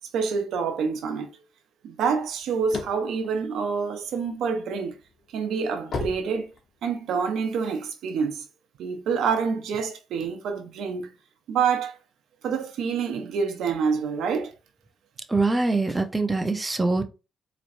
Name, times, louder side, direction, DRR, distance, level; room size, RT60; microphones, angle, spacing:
voice 1, 0.1-1.3 1.8-4.9 5.3-6.5 6.8-8.4 8.8-11.1 11.5-12.0 12.4-14.5, right 6 dB, 75° right, 0.9 m, -27 dB
sound 1, 2.2-4.4 4.9-7.1, left 3 dB, 50° left, 1.0 m, -35 dB
voice 2, 15.3-17.0, right 3 dB, 20° right, 0.7 m, -23 dB
4.2 x 3.1 x 2.6 m
cardioid pair, 90°, 0 cm